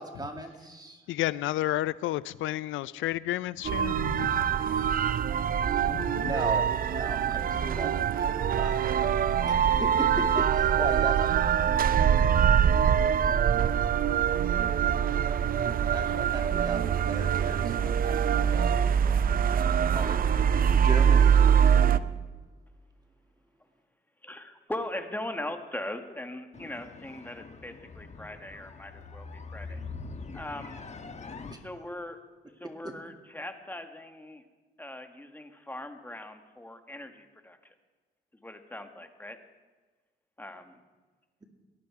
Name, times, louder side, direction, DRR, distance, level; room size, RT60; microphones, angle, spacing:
voice 1, 0.0-1.0 6.1-8.8 9.4-11.5 13.3-13.4 15.9-19.2 19.8-20.2 20.5-21.3 21.9-22.0 31.5-31.6 32.8-32.9, right 2 dB, 20° right, 2.1 m, -37 dB
voice 2, 1.1-4.5 5.8-6.3 9.3-9.7, left 15 dB, 80° left, 0.4 m, -32 dB
sound 1, 3.6-22.0, right 8 dB, 45° right, 0.6 m, -24 dB
voice 3, 24.2-29.8 30.3-30.8 31.6-32.2 32.6-34.4 34.8-37.7 38.4-39.4 40.4-40.8, left 1 dB, 10° left, 1.3 m, -40 dB
sound 2, 26.5-31.5, left 4 dB, 35° left, 1.2 m, -43 dB
18.5 x 11.0 x 4.7 m
cardioid pair, 90°, 20 cm